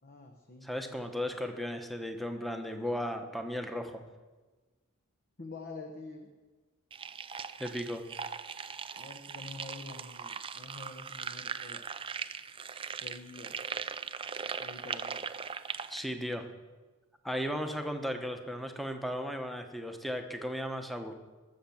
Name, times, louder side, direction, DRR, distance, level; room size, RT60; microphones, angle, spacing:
voice 1, 0.0-0.7 5.4-6.3 8.9-11.9 13.0-13.5 14.6-15.2, left 3 dB, 40° left, 4 dB, 1.1 m, -47 dB
voice 2, 0.6-4.0 7.6-8.0 15.9-16.4 17.2-21.1, equal, ahead, 5 dB, 1.1 m, -35 dB
sound 1, 6.9-16.0, right 6 dB, 25° right, 0.5 m, -40 dB
21.0 x 7.2 x 7.2 m, 1.3 s
head